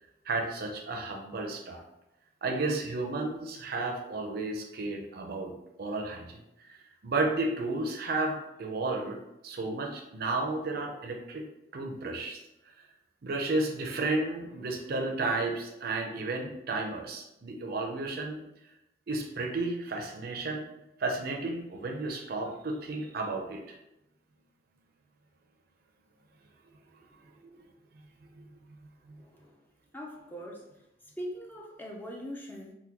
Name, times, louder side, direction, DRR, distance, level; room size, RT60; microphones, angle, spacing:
voice 1, 0.3-1.8 2.4-5.5 5.8-12.4 13.2-18.4 19.1-20.7 21.0-23.8 27.4-27.5 28.4-28.5 29.1-29.2, right 2 dB, 55° right, 2 dB, 0.5 m, -33 dB
voice 2, 29.1-29.6 29.9-30.7 31.2-32.7, equal, 10° left, -1 dB, 0.4 m, -41 dB
3.4 x 2.2 x 2.9 m, 0.89 s
head